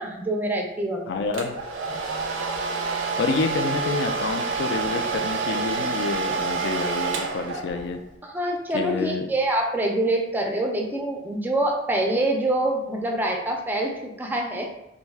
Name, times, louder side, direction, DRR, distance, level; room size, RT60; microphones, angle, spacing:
voice 1, 0.0-1.2 8.2-14.7, right 1 dB, 10° right, 0 dB, 0.4 m, -25 dB
voice 2, 1.1-1.5 2.9-8.0 8.7-9.3, left 4 dB, 65° left, 6 dB, 0.3 m, -28 dB
Domestic sounds home sounds, 1.3-8.0, right 4 dB, 90° right, 0.4 m, -28 dB
2.6 x 2.2 x 3.2 m, 0.84 s
head